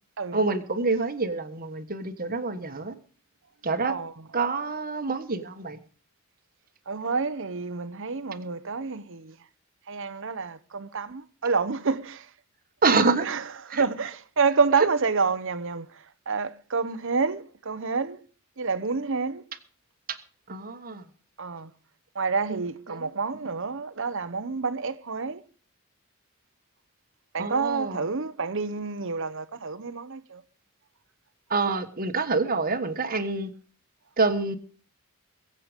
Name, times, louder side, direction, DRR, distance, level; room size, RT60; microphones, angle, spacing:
voice 1, 0.3-2.9 3.6-4.0 4.3-5.8 12.8-13.3 13.7-13.8 20.5-21.0 22.5-22.6 22.9-23.1 27.4-28.1 31.5-33.5 34.2-34.6, right 3 dB, 40° right, 1.4 m, -26 dB
voice 2, 6.9-9.3 9.9-12.2 13.3-13.4 13.7-15.9 16.3-18.2 18.6-19.4 21.4-21.7 22.2-25.4 27.3-30.4, right 4 dB, 60° right, 0.9 m, -28 dB
22.5 x 7.8 x 5.1 m
head